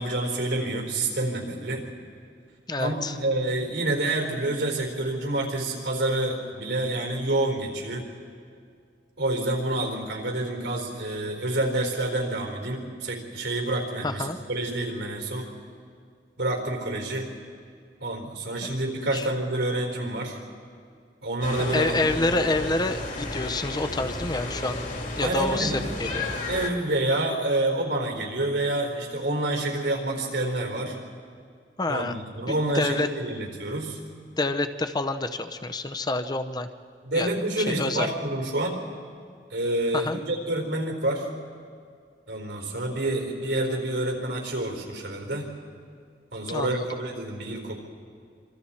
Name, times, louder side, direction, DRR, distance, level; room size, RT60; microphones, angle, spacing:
voice 1, 0.0-1.8 2.8-8.1 9.2-15.5 16.4-17.3 18.0-20.4 21.2-22.5 25.2-25.8 26.5-31.0 31.9-34.0 37.0-38.8 39.5-41.3 42.3-45.5 46.3-47.8, right 1 dB, 85° right, 2 dB, 4.2 m, -28 dB
voice 2, 2.7-3.2 14.0-14.4 18.6-18.7 19.1-19.3 21.7-24.8 25.2-26.3 31.8-32.1 32.7-33.1 34.4-36.7 37.1-37.3 37.7-38.1 39.9-40.2 46.5-46.9, left 2 dB, 25° left, 9 dB, 0.8 m, -27 dB
sound 1, 21.4-26.7, left 2 dB, 50° left, 2.4 m, -33 dB
26.5 x 26.0 x 4.4 m, 2.2 s
head